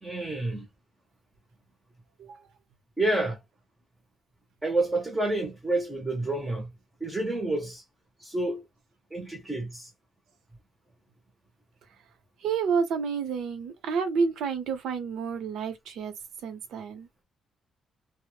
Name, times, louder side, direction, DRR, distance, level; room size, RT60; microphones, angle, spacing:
voice 1, 0.0-0.7 3.0-3.4 4.6-6.7 7.0-7.8 8.2-8.6 9.1-9.9, right 2 dB, 10° right, 0.6 m, -29 dB
voice 2, 12.4-16.2 16.4-17.1, right 5 dB, 70° right, 0.7 m, -29 dB
2.0 x 2.0 x 3.0 m
cardioid pair, 175°, 0 cm